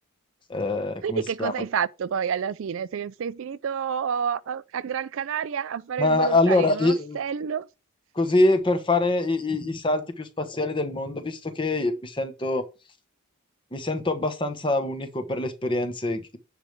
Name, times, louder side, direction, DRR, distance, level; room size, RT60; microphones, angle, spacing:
voice 1, 0.5-1.5 6.0-7.2 8.1-12.6 13.7-16.2, left 2 dB, 20° left, 1.0 m, -24 dB
voice 2, 1.0-7.7, right 7 dB, 60° right, 0.4 m, -29 dB
9.8 x 3.4 x 6.6 m
head